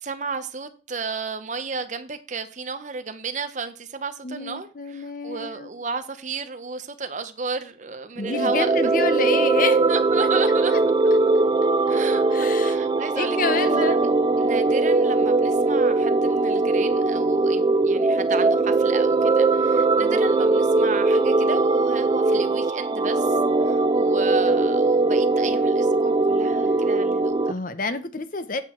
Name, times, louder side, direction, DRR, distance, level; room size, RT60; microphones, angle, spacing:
voice 1, 0.0-8.9 9.9-10.7 11.9-14.1 14.4-23.4 23.6-27.3, right 4 dB, 40° right, 0.8 m, -33 dB
voice 2, 4.2-5.7 8.2-9.8 10.7-10.8 12.3-12.8 13.2-14.0 20.0-20.2 27.5-28.6, left 4 dB, 45° left, 0.8 m, -28 dB
sound 1, 8.2-27.5, right 3 dB, 25° right, 0.3 m, -20 dB
8.6 x 6.1 x 4.5 m
head